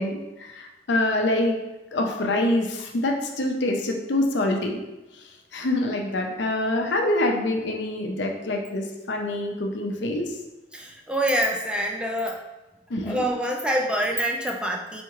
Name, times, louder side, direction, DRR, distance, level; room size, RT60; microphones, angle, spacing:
voice 1, 0.0-1.6 1.9-4.7 5.5-10.3 12.9-13.2, left 1 dB, 75° left, 2 dB, 0.6 m, -25 dB
voice 2, 10.7-12.4 13.0-15.0, equal, 5° right, 2 dB, 0.3 m, -26 dB
4.2 x 3.0 x 3.6 m, 1.0 s
head